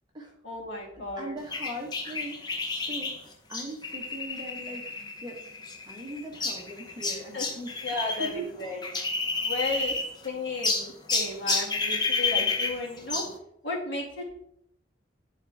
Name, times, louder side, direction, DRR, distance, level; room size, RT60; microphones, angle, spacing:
voice 1, 0.4-1.3 7.3-7.5 7.8-8.8 9.4-10.0 10.2-13.2 13.6-14.2, left 2 dB, 70° left, -4 dB, 2.5 m, -33 dB
voice 2, 0.9-2.6 2.9-4.9 5.2-5.4 5.9-7.9 8.2-8.5 9.7-9.9, right 1 dB, 25° right, -1 dB, 1.5 m, -40 dB
sound 1, 1.5-8.3 8.6-10.3 10.6-13.4, left 3 dB, 20° left, 0.9 m, -30 dB
11.5 x 4.0 x 3.7 m, 0.73 s
head